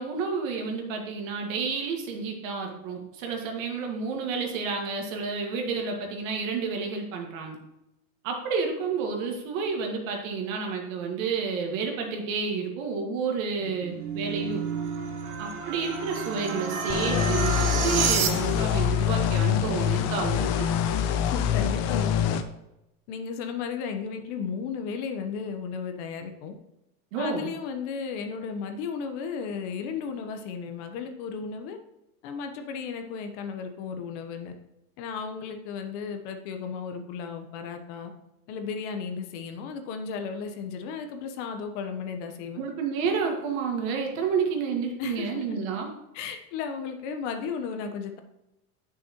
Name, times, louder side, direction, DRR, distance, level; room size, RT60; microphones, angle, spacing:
voice 1, 0.0-7.6 8.2-14.6 15.4-20.5 27.1-27.5 42.6-45.9, right 5 dB, 60° right, 2 dB, 2.0 m, -30 dB
sound 1, 13.6-18.8, right 6 dB, 45° right, 1.3 m, -30 dB
sound 2, 16.9-22.4, left 9 dB, 35° left, 0.6 m, -25 dB
voice 2, 21.2-22.4 23.1-26.5 27.2-31.8 32.2-34.5 35.0-38.1 38.5-42.6 45.0-45.4 46.1-48.2, left 6 dB, 50° left, 6 dB, 1.1 m, -34 dB
8.7 x 6.4 x 3.0 m, 0.90 s
supercardioid pair, 125°, 44 cm